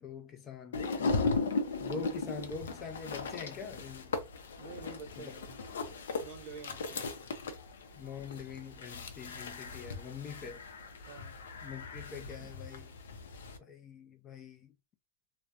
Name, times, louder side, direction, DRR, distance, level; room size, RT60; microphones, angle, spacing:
voice 1, 0.0-1.5 1.8-4.1 5.2-5.3 8.0-10.6 11.6-12.9 13.6-14.7, left 5 dB, 25° left, 0.3 m, -44 dB
sound 1, 0.7-13.6, left 4 dB, 90° left, 0.5 m, -37 dB
voice 2, 4.6-5.6 6.2-7.1 11.1-11.4 12.4-12.5, right 5 dB, 35° right, 0.7 m, -48 dB
2.3 x 2.0 x 2.7 m
supercardioid pair, 150°, 0 cm